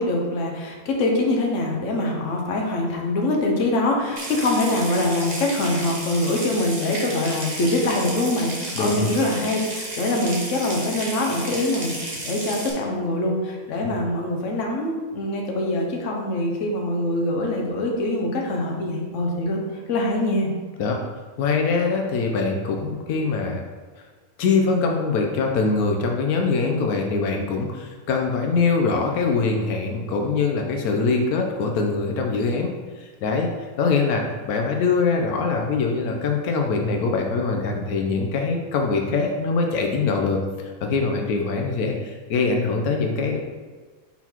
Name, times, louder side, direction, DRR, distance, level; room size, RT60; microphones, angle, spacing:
voice 1, 0.0-19.6 19.9-20.5, left 1 dB, 60° left, 0 dB, 1.3 m, -24 dB
Water tap faucet / Sink (filling or washing) / Trickle dribble, 4.2-12.7, right 1 dB, 30° right, 1.2 m, -33 dB
voice 2, 8.8-9.1 20.8-21.0 21.4-23.6 24.4-33.5 33.8-43.4, left 4 dB, 85° left, 2 dB, 1.2 m, -23 dB
5.5 x 4.1 x 4.4 m, 1.4 s
omnidirectional pair, 1.5 m